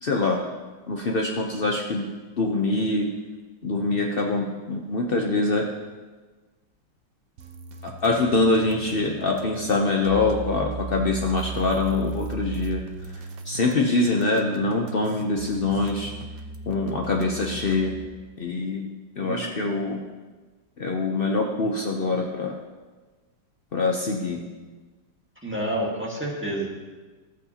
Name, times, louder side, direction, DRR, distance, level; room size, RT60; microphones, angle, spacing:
voice 1, 0.0-0.4 0.9-2.1 2.4-3.1 3.6-5.7 7.8-12.8 13.1-16.1 16.7-17.9 18.4-18.9 19.2-20.0 20.8-22.6 23.7-24.4, left 3 dB, 80° left, 1 dB, 0.5 m, -24 dB
sound 1, 7.4-18.0, right 4 dB, 60° right, 1.0 m, -37 dB
voice 2, 25.4-26.7, right 1 dB, 5° right, -4 dB, 1.4 m, -29 dB
14.5 x 8.1 x 2.8 m, 1.3 s
omnidirectional pair, 2.0 m